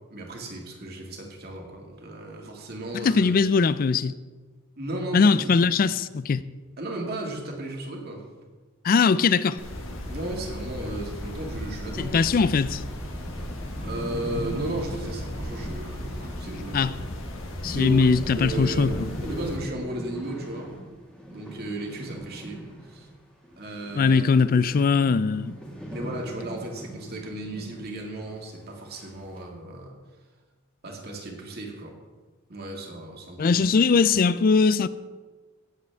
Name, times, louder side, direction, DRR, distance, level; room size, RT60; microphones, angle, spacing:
voice 1, 0.1-3.4 4.8-5.7 6.8-8.2 10.1-12.6 13.8-16.9 17.6-18.9 19.2-20.7 21.3-23.1 23.6-24.2 25.9-29.9 30.8-31.9 32.5-33.6, right 1 dB, 45° right, 2.0 m, -35 dB
voice 2, 2.9-4.1 5.1-6.4 8.8-9.6 12.0-12.8 16.7-16.9 17.6-19.1 24.0-25.6 33.4-34.9, left 5 dB, 40° left, 0.3 m, -21 dB
sound 1, 9.6-19.6, left 1 dB, 65° left, 1.5 m, -36 dB
sound 2, 12.9-23.2 23.4-27.9 28.2-28.3 28.9-29.4, right 1 dB, 5° left, 1.8 m, -39 dB
17.0 x 7.6 x 3.5 m
head